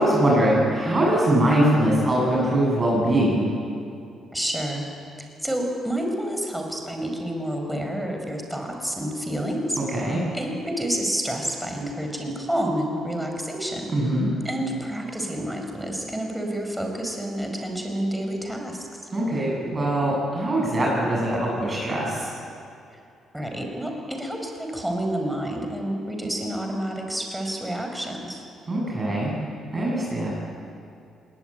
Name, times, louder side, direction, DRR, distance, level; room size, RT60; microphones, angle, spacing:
voice 1, 0.0-3.5 9.9-10.2 13.9-14.3 19.1-22.3 28.7-29.3 29.7-30.3, right 1 dB, 30° right, -4 dB, 7.7 m, -22 dB
voice 2, 4.3-4.8 5.2-9.8 10.3-13.9 14.4-18.9 23.3-28.4, right 1 dB, 5° right, 2 dB, 4.8 m, -29 dB
20.5 x 19.5 x 9.0 m, 2.5 s
cardioid pair, 90°, 0 cm